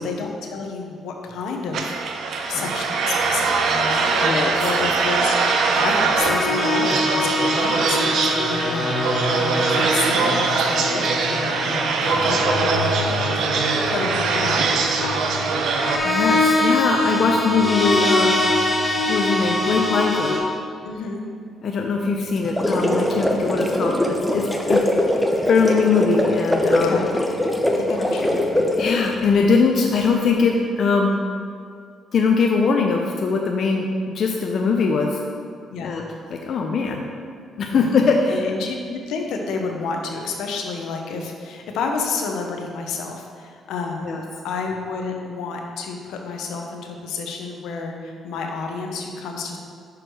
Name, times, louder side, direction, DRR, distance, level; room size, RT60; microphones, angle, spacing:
voice 1, 0.0-13.0 13.9-14.7 15.0-15.5 20.8-21.2 26.8-27.0 27.8-28.7 35.7-36.0 37.7-37.9 38.3-44.2 44.4-49.6, left 4 dB, 85° left, 2 dB, 0.8 m, -30 dB
sound 1, 1.7-16.0, right 4 dB, 75° right, 0.6 m, -22 dB
sound 2, 6.2-20.4, left 1 dB, 30° left, 1.4 m, -24 dB
voice 2, 16.0-18.4 19.1-20.4 21.6-24.8 25.5-27.0 28.8-31.1 32.1-35.2 35.8-37.0 37.6-38.4 44.0-44.2, left 4 dB, 60° left, 1 dB, 0.5 m, -21 dB
sound 3, 22.4-29.2, left 1 dB, ahead, 0.7 m, -21 dB
6.1 x 4.9 x 4.7 m, 2.2 s
cardioid pair, 90°, 0 cm